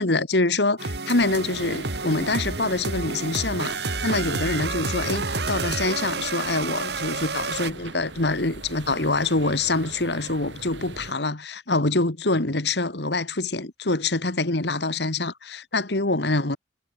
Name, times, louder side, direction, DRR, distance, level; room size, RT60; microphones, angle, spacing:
voice 1, 0.0-16.6, left 2 dB, 75° left, 2.0 m, -25 dB
sound 1, 0.8-7.7, right 3 dB, 70° right, 3.2 m, -30 dB
sound 2, 1.2-11.1, right 3 dB, 90° right, 2.9 m, -41 dB
head